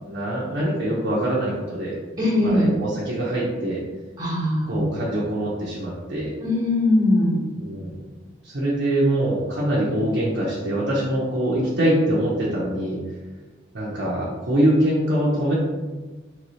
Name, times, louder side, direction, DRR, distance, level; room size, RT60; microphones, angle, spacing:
voice 1, 0.0-1.9 2.4-3.8 4.7-6.3 7.6-8.0 8.4-13.0 13.7-15.5, right 1 dB, 55° right, -6 dB, 0.7 m, -23 dB
voice 2, 2.2-2.7 4.2-4.8 6.4-7.4, left 1 dB, 20° right, -8 dB, 1.3 m, -20 dB
3.1 x 2.7 x 3.1 m, 1.3 s
head